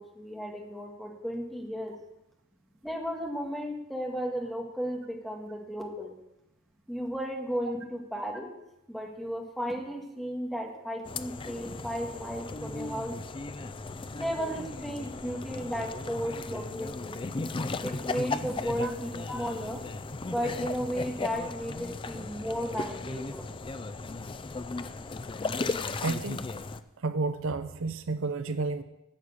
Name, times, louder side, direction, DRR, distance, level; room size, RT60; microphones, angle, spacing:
voice 1, 0.0-2.0 2.8-6.1 6.9-8.5 8.9-13.2 14.2-17.2 17.8-19.8 20.3-23.5, equal, ahead, 0 dB, 1.7 m, -34 dB
sound 1, 11.0-26.8, left 3 dB, 25° left, 0.4 m, -36 dB
voice 2, 26.0-26.5 27.0-28.8, right 3 dB, 65° right, 11 dB, 0.6 m, -31 dB
11.0 x 6.6 x 8.7 m, 0.90 s
head